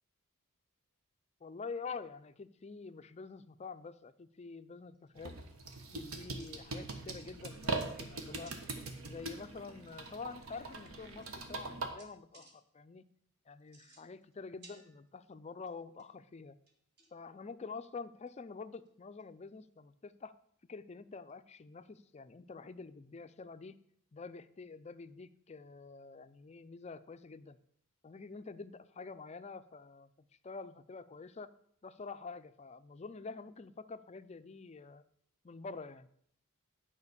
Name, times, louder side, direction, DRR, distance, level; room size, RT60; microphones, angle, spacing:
voice 1, 1.4-5.3 5.9-8.6 9.0-13.1 13.5-16.5 17.1-20.3 20.7-23.8 24.1-27.6 28.0-30.1 30.4-31.5 31.8-35.0 35.4-36.1, left 4 dB, 30° left, 12 dB, 0.4 m, -47 dB
sound 1, 4.9-5.2 5.7-6.0 6.3-6.5 7.1-7.3 7.6-8.1 8.4-8.8 10.2-10.3 10.8-10.9 11.2-11.7 12.0-12.5 13.6-14.3 14.6-15.3 15.7-16.2 16.7-17.3 17.8-17.9 18.3-18.4 18.7-18.9 19.2-19.3 21.3-21.4, right 3 dB, 50° right, 1.7 m, -61 dB
sound 2, 5.1-11.9, right 3 dB, 75° right, 1.3 m, -42 dB
9.6 x 5.1 x 6.7 m, 0.66 s
head